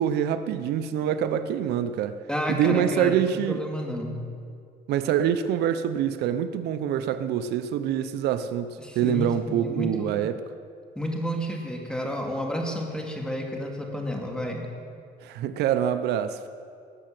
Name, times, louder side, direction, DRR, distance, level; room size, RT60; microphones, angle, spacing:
voice 1, 0.0-2.2 2.5-3.6 4.9-10.4 15.2-16.5, right 9 dB, 80° right, 0.7 m, -25 dB
voice 2, 2.3-4.2 8.8-10.2 11.0-14.7, equal, 5° left, 2.4 m, -31 dB
19.0 x 7.6 x 7.6 m
cardioid pair, 110°, 17 cm